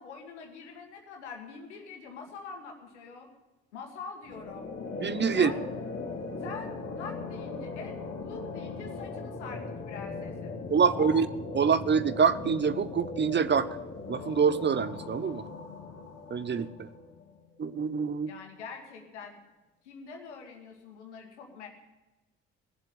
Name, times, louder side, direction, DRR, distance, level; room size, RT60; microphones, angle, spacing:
voice 1, 0.0-3.3 3.7-4.7 5.3-5.7 6.4-10.6 10.9-11.2 18.3-19.4 19.8-21.7, left 5 dB, 85° left, 3 dB, 1.7 m, -44 dB
sound 1, 4.2-17.4, left 3 dB, 45° left, 2.0 m, -39 dB
voice 2, 5.0-5.5 10.7-11.3 11.5-13.7 14.1-15.4 16.3-16.9 17.6-18.3, right 6 dB, 30° right, 14 dB, 0.8 m, -25 dB
17.5 x 7.6 x 8.4 m, 1.1 s
hypercardioid pair, 45°, 34 cm